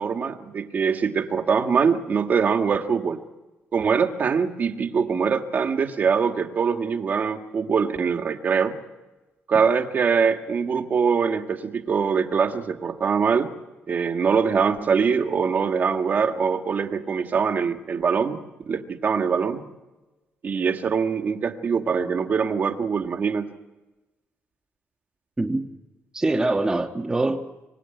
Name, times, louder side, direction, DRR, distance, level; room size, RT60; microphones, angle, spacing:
voice 1, 0.0-3.2 3.7-8.8 9.5-13.5 13.9-18.4 18.7-19.7 20.4-23.5, right 6 dB, 40° right, 1.9 m, -23 dB
voice 2, 25.4-25.7 26.1-27.7, right 2 dB, 15° right, 1.4 m, -24 dB
26.0 x 24.5 x 9.2 m
cardioid pair, 145°, 4 cm